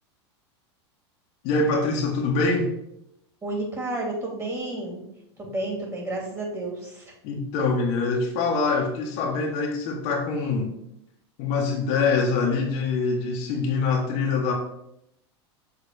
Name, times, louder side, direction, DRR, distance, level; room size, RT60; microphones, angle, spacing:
voice 1, 1.4-2.7 7.2-10.7 11.4-14.5, left 4 dB, 55° left, 0 dB, 1.6 m, -24 dB
voice 2, 3.4-5.0 5.4-7.2, right 2 dB, 20° right, -1 dB, 2.8 m, -31 dB
6.7 x 4.0 x 5.3 m, 0.79 s
hypercardioid pair, 110°, 15 cm